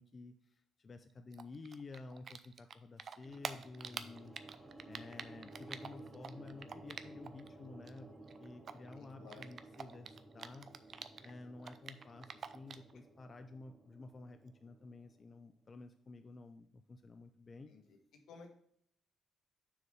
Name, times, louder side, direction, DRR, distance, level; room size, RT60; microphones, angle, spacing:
voice 1, 0.0-4.4 4.9-8.1 8.4-10.7 11.2-17.7, left 3 dB, 35° left, 7 dB, 0.5 m, -52 dB
Typing, 1.3-7.5 7.7-11.3 11.6-12.9, right 6 dB, 50° right, 0.5 m, -46 dB
sound 1, 3.2-15.5, right 2 dB, 15° right, 1.1 m, -56 dB
voice 2, 8.9-9.5 12.9-13.0 17.7-18.0 18.3-18.5, left 5 dB, 80° left, 4 dB, 1.4 m, -56 dB
6.4 x 4.8 x 5.4 m, 0.68 s
cardioid pair, 90°, 0 cm